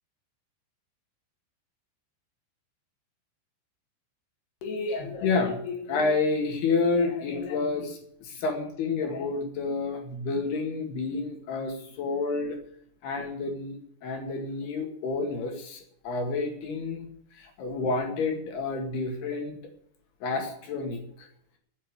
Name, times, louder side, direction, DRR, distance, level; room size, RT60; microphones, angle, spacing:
voice 1, 4.6-12.6 13.0-19.6 20.2-21.3, left 3 dB, 60° left, 3 dB, 3.6 m, -29 dB
11.5 x 8.5 x 8.8 m, 0.66 s
omnidirectional pair, 5.9 m